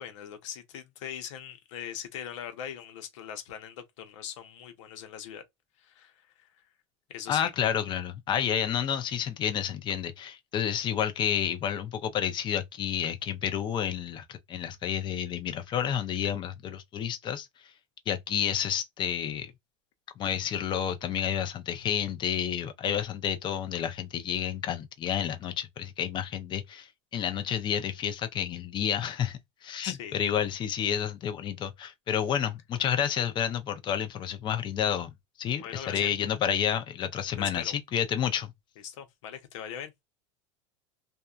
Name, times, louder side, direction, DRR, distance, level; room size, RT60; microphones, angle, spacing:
voice 1, 0.0-5.4 5.8-6.6 7.1-7.5 29.8-30.1 35.6-36.2 37.4-37.8 38.8-39.9, left 9 dB, 80° left, 0.8 m, -41 dB
voice 2, 7.3-17.5 18.1-19.5 20.2-35.1 35.4-38.5, left 9 dB, 30° left, 0.5 m, -30 dB
2.6 x 2.2 x 2.3 m
supercardioid pair, 125°, 16 cm